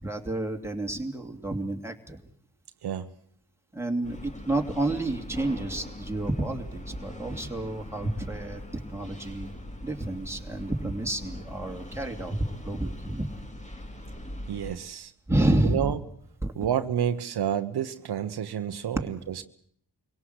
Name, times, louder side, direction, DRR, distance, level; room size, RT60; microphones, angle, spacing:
voice 1, 0.0-2.2 3.7-9.5 9.8-12.4 12.6-13.3 15.3-15.9 16.4-16.5, right 1 dB, 5° right, 2 dB, 2.9 m, -30 dB
sound 1, 4.0-14.8, left 1 dB, 20° left, 2.7 m, -41 dB
voice 2, 14.5-15.1 15.6-16.0 16.5-19.4, right 9 dB, 80° right, 9 dB, 1.1 m, -29 dB
24.0 x 17.5 x 8.1 m, 0.62 s
cardioid pair, 60°, 39 cm